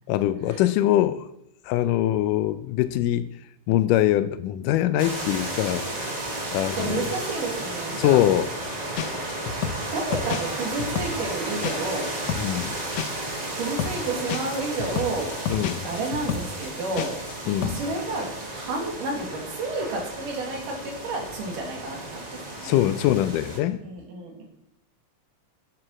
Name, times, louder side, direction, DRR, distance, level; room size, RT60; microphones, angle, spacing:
voice 1, 0.1-1.2 1.7-3.3 3.7-5.9 6.1-6.2 6.5-7.1 8.0-8.5 12.4-12.8 15.5-15.9 17.5-17.8 22.6-23.8, left 13 dB, 90° left, 14 dB, 2.2 m, -23 dB
sound 1, 5.0-23.6, right 1 dB, 65° right, 0.4 m, -33 dB
voice 2, 6.8-8.2 9.9-12.1 13.6-15.4 15.9-17.1 17.6-22.8 23.8-24.4, right 3 dB, 80° right, 1 dB, 3.6 m, -31 dB
sound 2, 8.6-8.7 9.0-12.0 12.3-17.4 17.6-17.8, left 7 dB, 75° left, 2.1 m, -30 dB
8.7 x 7.6 x 6.2 m, 0.83 s
omnidirectional pair, 3.7 m